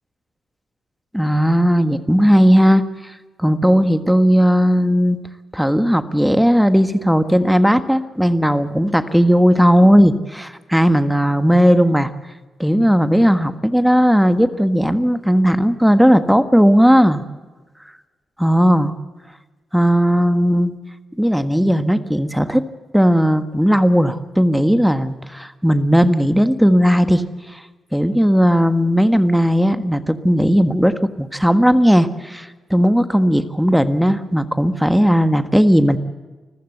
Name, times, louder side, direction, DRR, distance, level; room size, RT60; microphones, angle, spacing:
voice 1, 1.1-2.8 3.4-5.2 5.5-12.1 12.6-17.2 18.4-18.9 19.7-20.7 21.2-22.6 22.9-27.6 27.9-36.0, equal, ahead, 10 dB, 1.5 m, -16 dB
25.5 x 15.0 x 8.0 m, 1.3 s
cardioid pair, 60°, 0 cm